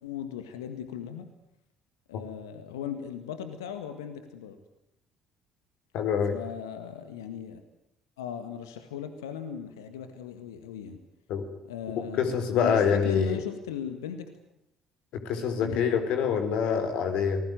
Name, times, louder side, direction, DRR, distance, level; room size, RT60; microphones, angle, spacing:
voice 1, 0.0-1.3 2.1-4.6 6.3-7.6 8.2-11.0 11.7-14.3 15.6-15.9, left 8 dB, 75° left, 9 dB, 1.8 m, -38 dB
voice 2, 5.9-6.3 11.3-11.5 12.2-13.4 15.2-17.4, left 6 dB, 60° left, 7 dB, 4.1 m, -25 dB
28.0 x 20.0 x 9.4 m, 0.81 s
figure-of-eight pair, 50°, 2 cm